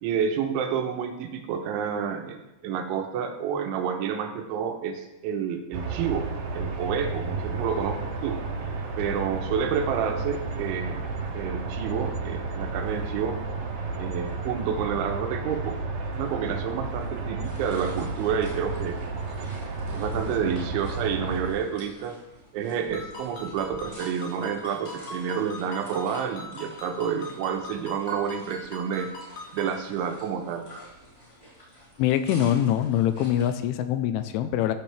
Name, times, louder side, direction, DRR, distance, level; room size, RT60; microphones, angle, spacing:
voice 1, 0.0-8.4 9.0-11.0 11.3-13.4 14.0-15.8 16.1-19.0 19.9-22.2 22.5-29.1 29.5-30.7, right 7 dB, 80° right, 6 dB, 3.3 m, -29 dB
sound 1, 5.7-21.5, right 3 dB, 60° right, 2.7 m, -32 dB
sound 2, 17.4-33.5, equal, 5° left, 4.7 m, -49 dB
Ringtone, 22.9-29.8, left 1 dB, 60° left, 3.6 m, -42 dB
voice 2, 32.0-34.8, left 11 dB, 90° left, 9 dB, 3.2 m, -24 dB
15.0 x 9.1 x 3.4 m, 0.94 s
omnidirectional pair, 5.5 m